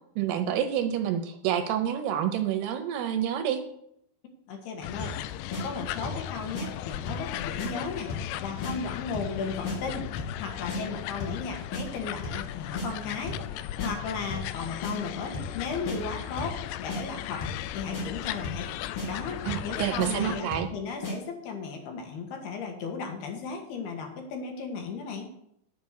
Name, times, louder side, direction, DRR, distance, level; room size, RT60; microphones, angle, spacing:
voice 1, 0.2-3.6 19.4-20.7, right 10 dB, 75° right, 8 dB, 2.7 m, -28 dB
voice 2, 4.5-5.1 5.6-8.1 8.4-10.1 10.4-17.4 17.7-18.7 19.0-25.3, left 5 dB, 65° left, 3 dB, 3.4 m, -35 dB
sound 1, 4.8-20.4, left 13 dB, 85° left, 2.7 m, -37 dB
sound 2, 5.0-5.2 5.5-5.6 6.0-6.2 6.5-6.7 7.1-7.3 7.6-7.7 8.1-8.3 8.6-8.7 9.1-9.3 9.6-9.8 10.2-10.4 10.7-10.8 11.2-11.4 11.7-11.8 12.2-12.5 12.7-12.9 13.3-13.5 13.8-13.9 14.3-14.5 14.8-14.9 15.3-15.6 15.9-16.0 16.4-16.6 16.9-17.0 17.4-17.6 17.9-18.0 18.4-18.7 19.0-19.1 19.5-19.7 20.0-20.1 20.5-20.7 21.0-21.2, left 2 dB, 40° left, 2.3 m, -34 dB
11.0 x 7.4 x 6.5 m, 0.75 s
omnidirectional pair, 5.1 m